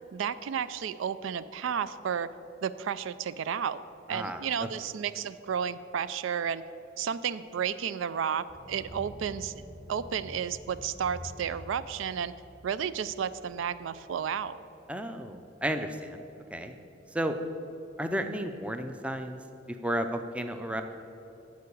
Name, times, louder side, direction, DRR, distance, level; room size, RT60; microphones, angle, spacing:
voice 1, 0.1-2.3 2.6-3.8 4.1-6.6 7.0-9.6 9.9-12.3 12.6-14.6, right 7 dB, 80° right, 15 dB, 0.3 m, -32 dB
voice 2, 4.1-4.5 14.9-16.2 16.5-16.7 17.1-17.4 18.0-19.4 19.7-20.8, right 1 dB, 5° right, 7 dB, 0.4 m, -33 dB
sound 1, 8.5-14.5, equal, 35° right, 2.2 m, -48 dB
11.5 x 4.7 x 8.4 m, 2.9 s
head